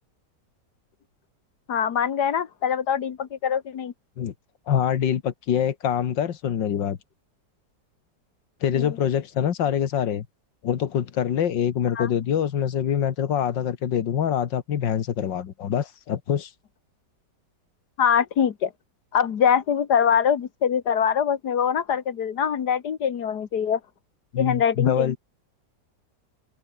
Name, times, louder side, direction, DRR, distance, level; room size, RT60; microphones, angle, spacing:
voice 1, 1.7-3.9 8.7-9.0 12.0-12.1 18.0-18.7 19.1-23.8 24.4-25.2, left 8 dB, 65° left, 1.8 m, -23 dB
voice 2, 4.7-7.0 8.6-10.3 10.6-16.5 24.3-25.2, left 9 dB, 90° left, 2.1 m, -25 dB
omnidirectional pair, 1.9 m